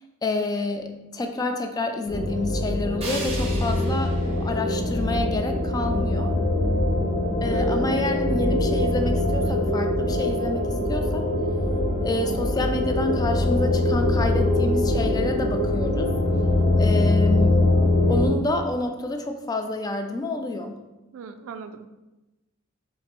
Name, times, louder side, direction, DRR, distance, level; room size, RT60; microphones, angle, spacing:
voice 1, 0.2-6.3 7.4-11.3 12.0-16.1 16.7-17.7 18.1-20.8, left 2 dB, 20° left, 5 dB, 0.3 m, -28 dB
sound 1, 2.1-18.3, left 1 dB, 60° left, 0.6 m, -23 dB
sound 2, 3.0-6.0, right 2 dB, 30° right, 0.9 m, -39 dB
voice 2, 7.4-8.0 21.1-21.9, right 5 dB, 70° right, 10 dB, 0.3 m, -39 dB
4.3 x 2.0 x 4.1 m, 1.0 s
head